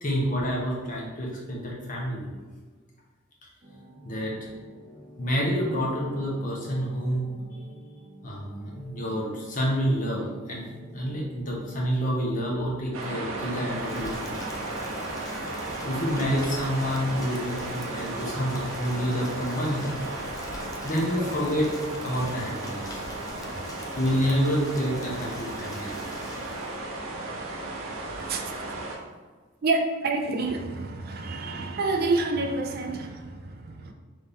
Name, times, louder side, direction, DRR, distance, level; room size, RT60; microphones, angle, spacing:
voice 1, 0.0-2.3 4.0-4.4 5.2-7.3 8.2-10.6 10.9-14.4 15.8-19.9 20.8-21.7 22.0-23.0 24.0-25.9, equal, 40° left, -3 dB, 1.0 m, -28 dB
sound 1, 3.6-19.7, right 1 dB, 35° right, 0.8 m, -48 dB
sound 2, 12.9-29.0, right 2 dB, 90° right, 0.7 m, -35 dB
Rain, 13.6-26.8, left 2 dB, 20° left, 0.3 m, -44 dB
voice 2, 29.6-33.9, right 3 dB, 50° right, 4 dB, 0.4 m, -28 dB
4.0 x 3.1 x 3.5 m, 1.4 s
head